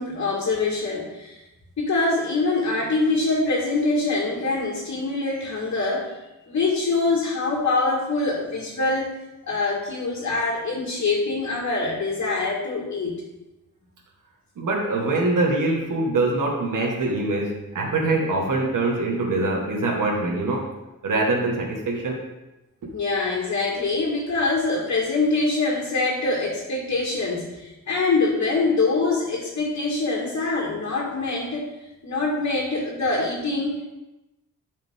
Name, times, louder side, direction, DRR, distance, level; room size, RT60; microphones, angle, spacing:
voice 1, 0.0-1.4 1.8-6.2 6.5-9.1 9.5-13.2 22.9-31.7 32.0-33.8, left 3 dB, 55° left, -4 dB, 1.9 m, -24 dB
voice 2, 14.6-20.7 21.0-22.2 22.8-22.9, right 2 dB, 75° right, -1 dB, 1.7 m, -24 dB
11.5 x 5.1 x 3.7 m, 0.99 s
wide cardioid pair, 135°, 32 cm